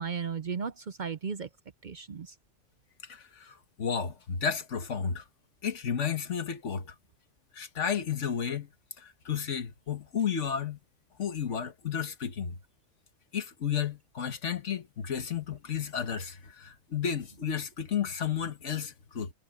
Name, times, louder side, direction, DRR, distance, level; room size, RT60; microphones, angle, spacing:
voice 1, 0.0-1.5 1.8-2.3, right 6 dB, 50° right, 0.7 m, -35 dB
voice 2, 3.0-5.2 5.6-6.9 7.5-8.7 9.0-10.8 11.2-12.6 13.3-19.3, left 7 dB, 75° left, 1.7 m, -32 dB
omnidirectional pair, 1.2 m